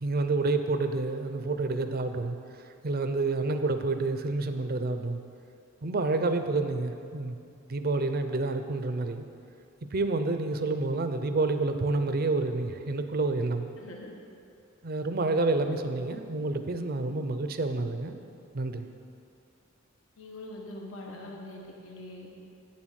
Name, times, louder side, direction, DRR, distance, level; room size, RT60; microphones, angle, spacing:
voice 1, 0.0-2.4 2.8-5.2 5.8-7.4 7.7-9.2 9.9-13.7 14.8-18.1 18.5-18.9, right 3 dB, 50° right, 8 dB, 0.6 m, -28 dB
voice 2, 13.8-14.1 20.2-22.3, left 1 dB, 75° left, -1 dB, 1.3 m, -43 dB
8.7 x 7.3 x 6.4 m, 2.5 s
head